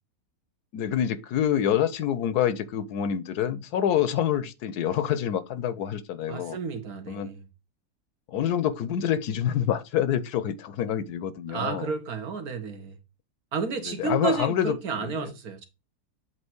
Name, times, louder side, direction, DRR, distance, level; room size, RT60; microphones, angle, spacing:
voice 1, 0.7-6.6 7.1-7.3 8.3-11.9 13.9-15.3, left 10 dB, 80° left, 1.2 m, -27 dB
voice 2, 6.3-7.4 11.5-13.0 13.5-15.7, right 5 dB, 70° right, 1.6 m, -31 dB
7.9 x 2.9 x 6.0 m
omnidirectional pair, 1.6 m